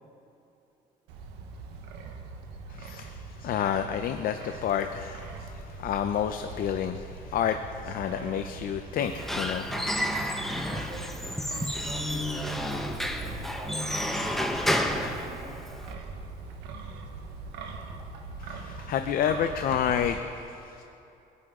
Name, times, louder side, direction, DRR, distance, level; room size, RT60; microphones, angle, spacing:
Wind, 1.1-20.1, right 4 dB, 90° right, 1.3 m, -41 dB
voice 1, 2.7-10.9 11.6-11.9 18.4-20.8, left 9 dB, 60° left, 7 dB, 0.6 m, -30 dB
Squeak / Wood, 9.0-15.9, equal, ahead, 1.0 m, -31 dB
voice 2, 10.6-15.6, right 1 dB, 15° right, -2 dB, 2.8 m, -45 dB
22.0 x 9.7 x 3.8 m, 2.8 s
cardioid pair, 110°, 17 cm